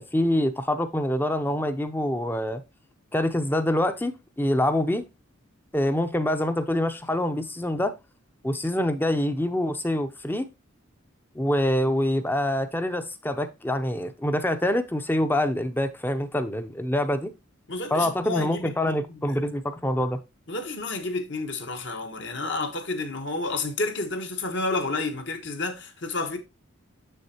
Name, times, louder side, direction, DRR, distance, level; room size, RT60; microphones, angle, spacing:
voice 1, 0.0-2.6 3.1-5.0 5.7-7.9 8.4-10.4 11.4-17.3 17.9-20.2, left 1 dB, 10° left, 0.5 m, -25 dB
voice 2, 17.7-19.4 20.5-26.4, left 3 dB, 60° left, 1.2 m, -30 dB
7.0 x 6.5 x 2.8 m
head